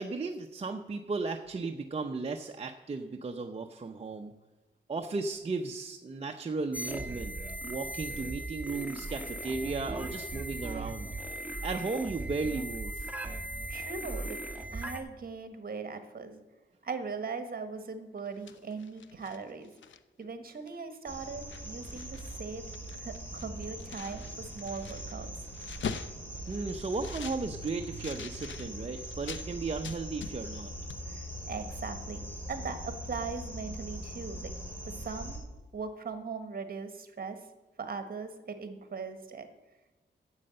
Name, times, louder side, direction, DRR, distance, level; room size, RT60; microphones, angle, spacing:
voice 1, 0.0-4.3 4.9-7.4 7.6-11.1 11.6-13.1 26.5-30.7, right 3 dB, 30° right, 4 dB, 0.7 m, -35 dB
sound 1, 6.7-15.0, right 1 dB, 5° right, 1.2 m, -38 dB
voice 2, 13.7-14.4 14.7-16.4 16.8-19.7 20.2-22.6 23.0-25.3 31.1-34.5 34.9-35.4 35.7-37.4 37.8-39.5, right 5 dB, 50° right, 9 dB, 1.4 m, -39 dB
sound 2, 18.2-20.2 20.7-20.8 21.1-22.4 22.6-29.5 29.8-30.6 30.9-31.0, left 6 dB, 80° left, 0.7 m, -44 dB
sound 3, 21.1-35.4, right 1 dB, 10° left, 3.4 m, -42 dB
9.8 x 7.8 x 7.6 m, 1.2 s
wide cardioid pair, 110°, 19 cm